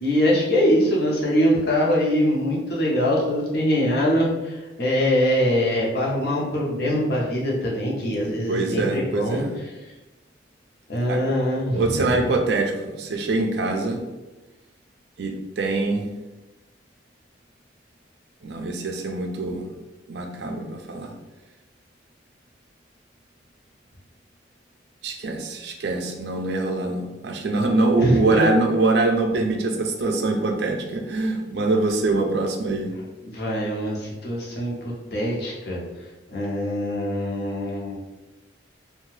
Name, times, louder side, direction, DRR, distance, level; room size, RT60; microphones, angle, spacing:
voice 1, 0.0-9.4 10.9-12.3 28.0-28.5 33.2-34.7 35.1-35.8 36.3-38.0, equal, 55° left, -4 dB, 0.7 m, -23 dB
voice 2, 8.2-9.5 11.1-11.2 11.7-14.0 15.2-16.1 18.4-19.7 20.1-21.1 25.0-32.9, right 2 dB, 60° right, 3 dB, 0.4 m, -24 dB
2.6 x 2.2 x 3.1 m, 1.1 s
head